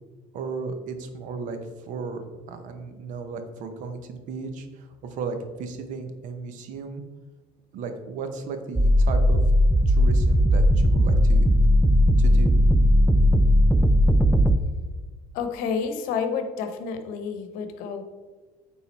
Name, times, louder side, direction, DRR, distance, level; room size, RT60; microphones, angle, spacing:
voice 1, 0.3-7.0 7.7-9.4 9.9-11.5 12.2-12.6, right 4 dB, 65° right, 7 dB, 0.9 m, -35 dB
sound 1, 8.8-14.6, equal, 5° right, 0.3 m, -18 dB
voice 2, 15.3-18.0, left 6 dB, 80° left, 8 dB, 0.9 m, -29 dB
8.6 x 3.7 x 4.2 m, 1.3 s
cardioid pair, 120°, 14 cm